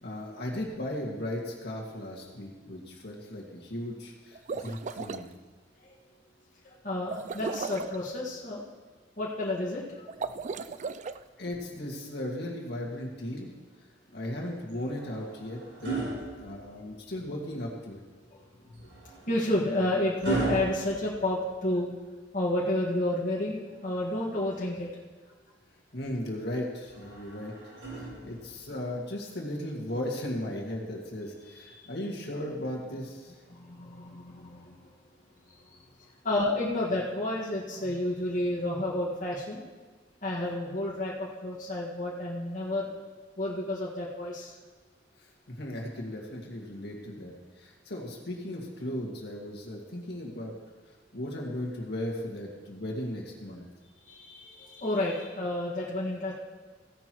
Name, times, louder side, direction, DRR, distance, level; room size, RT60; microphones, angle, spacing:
voice 1, 0.0-5.3 11.4-13.5 14.1-16.1 16.4-18.0 25.9-27.5 27.9-33.3 45.5-50.5 51.1-53.6, left 1 dB, 65° left, -1 dB, 2.0 m, -36 dB
sound 1, 4.3-5.2 7.1-8.0 10.1-11.2, right 4 dB, 40° right, 0.3 m, -36 dB
voice 2, 6.6-8.6 9.2-10.0 16.8-16.9 18.3-18.9 19.3-21.9 22.3-24.9 31.6-31.9 33.5-34.9 35.5-35.8 36.2-39.6 40.2-42.9 43.4-44.5 54.0-56.3, left 1 dB, 45° left, -6 dB, 1.7 m, -31 dB
sound 2, 14.7-17.2 18.7-21.9 23.7-24.9 26.8-28.7 29.9-30.1, right 3 dB, 90° right, 4.2 m, -37 dB
15.5 x 10.5 x 3.1 m, 1.4 s
head